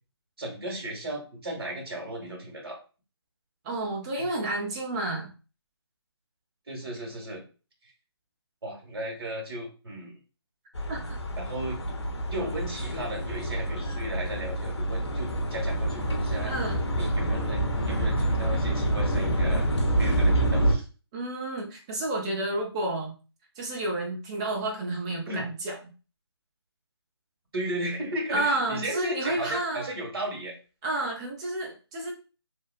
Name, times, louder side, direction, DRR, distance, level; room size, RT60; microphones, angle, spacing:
voice 1, 0.4-2.8 4.2-4.3 6.7-7.4 8.6-10.1 11.3-11.8 12.3-16.5 17.0-20.9 25.3-25.5 27.5-30.5, right 1 dB, 60° right, 0 dB, 1.3 m, -35 dB
voice 2, 3.6-5.3 10.9-11.2 16.5-16.8 21.1-23.1 23.6-25.8 28.3-29.9 30.8-32.1, right 2 dB, 10° right, -1 dB, 0.3 m, -30 dB
sound 1, 10.7-20.7, right 1 dB, 80° left, 0.6 m, -27 dB
2.7 x 2.1 x 2.4 m, 0.34 s
figure-of-eight pair, 155°, 14 cm